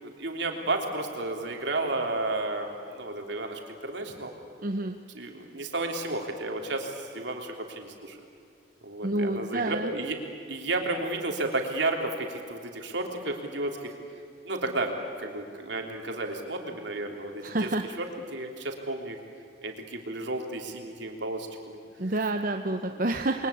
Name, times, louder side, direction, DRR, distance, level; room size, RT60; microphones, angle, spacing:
voice 1, 0.0-4.3 5.1-8.2 8.8-10.2 10.5-13.9 14.4-14.9 15.2-19.2 19.6-22.1 22.7-23.1, right 2 dB, 70° right, 2 dB, 3.5 m, -32 dB
voice 2, 4.6-5.0 9.0-9.9 17.4-17.8 22.0-23.5, right 2 dB, 45° right, 5 dB, 0.9 m, -28 dB
29.5 x 22.5 x 8.6 m, 2.4 s
head